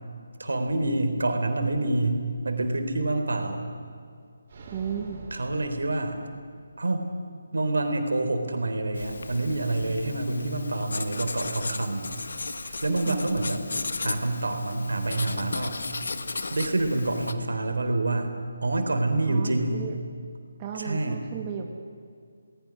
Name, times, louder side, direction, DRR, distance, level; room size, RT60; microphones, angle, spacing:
voice 1, 0.4-3.7 5.3-6.2 6.8-7.0 7.5-12.0 12.6-13.7 14.0-15.8 16.5-19.9 20.7-21.2, right 2 dB, 70° right, 6 dB, 3.6 m, -27 dB
sound 1, 4.5-6.7, right 2 dB, 40° right, 5.1 m, -45 dB
voice 2, 4.7-5.2 13.0-13.2 19.3-20.0 20.6-21.7, right 7 dB, 25° right, 1 dB, 1.7 m, -34 dB
Writing, 9.0-17.3, left 3 dB, 60° left, 1.5 m, -35 dB
29.0 x 19.5 x 6.3 m, 2.2 s
figure-of-eight pair, 150°, 0 cm